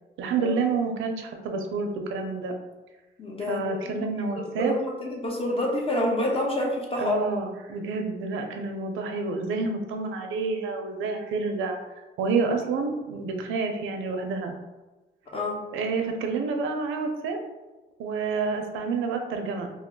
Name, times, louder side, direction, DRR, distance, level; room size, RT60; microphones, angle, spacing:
voice 1, 0.2-2.5 3.5-4.8 7.0-11.8 12.2-14.5 15.7-17.4 18.0-19.7, right 4 dB, 85° right, 4 dB, 0.5 m, -28 dB
voice 2, 3.2-4.1 4.6-7.1 15.3-15.6, left 1 dB, 30° left, -1 dB, 0.8 m, -28 dB
2.9 x 2.0 x 3.7 m, 1.1 s
cardioid pair, 90°, 20 cm